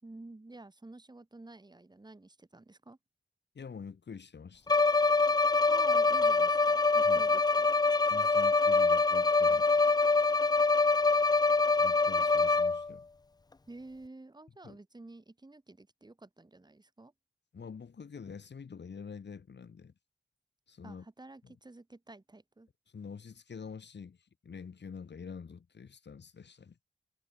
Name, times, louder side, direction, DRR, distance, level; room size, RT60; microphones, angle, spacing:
voice 1, 0.0-3.0 5.7-7.7 13.7-17.1 20.8-22.7, right 2 dB, 25° right, 7.5 m, -51 dB
voice 2, 3.5-4.8 7.1-7.3 8.1-9.7 11.8-13.1 14.6-14.8 17.5-19.9 20.7-21.1 21.4-21.5 22.9-26.8, left 6 dB, 80° left, 7.2 m, -46 dB
Bowed string instrument, 4.7-12.9, left 3 dB, 25° left, 0.5 m, -25 dB
wide cardioid pair, 130°, 18 cm